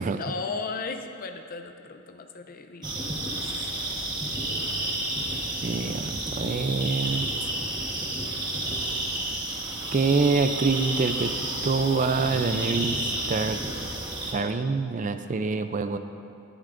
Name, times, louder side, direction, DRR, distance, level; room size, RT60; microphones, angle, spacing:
voice 1, 0.2-3.6, left 4 dB, 40° left, 6 dB, 0.5 m, -36 dB
sound 1, 2.8-14.3, right 1 dB, 20° right, 1.2 m, -31 dB
voice 2, 5.6-7.3 9.9-11.3 11.6-13.0 13.3-13.6 14.3-16.0, right 4 dB, 35° right, 9 dB, 0.4 m, -25 dB
17.5 x 11.0 x 2.6 m, 2.6 s
head